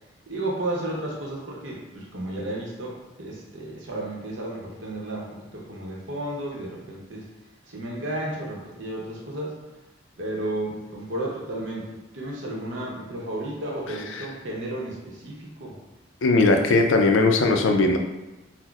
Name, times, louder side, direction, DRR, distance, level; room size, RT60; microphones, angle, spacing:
voice 1, 0.3-7.3 7.7-9.5 10.2-15.8, right 1 dB, 70° right, -3 dB, 0.7 m, -33 dB
voice 2, 16.2-18.0, left 3 dB, 80° left, 4 dB, 0.4 m, -19 dB
5.7 x 2.0 x 2.4 m, 1.1 s
head